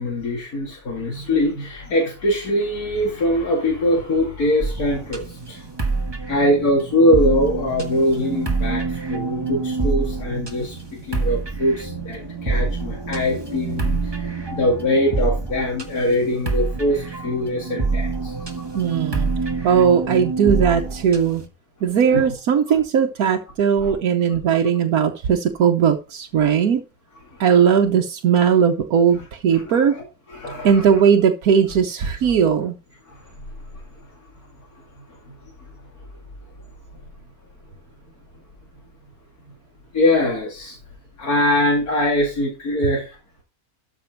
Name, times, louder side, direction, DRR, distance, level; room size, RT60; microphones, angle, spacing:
voice 1, 0.0-5.7 6.3-18.6 18.9-19.0 22.1-22.3 23.8-23.9 27.3-27.4 29.5-29.8 30.3-30.9 33.1-33.2 35.1-35.2 39.9-40.8 41.2-43.2, left 1 dB, 85° left, -2 dB, 3.1 m, -22 dB
sound 1, 4.6-21.5, right 3 dB, 20° right, 1.4 m, -26 dB
voice 2, 18.7-19.3 19.6-21.4 21.8-26.8 27.4-30.0 30.6-32.7, right 7 dB, 85° right, 3 dB, 1.4 m, -18 dB
13.0 x 6.1 x 4.5 m, 0.31 s
omnidirectional pair, 1.5 m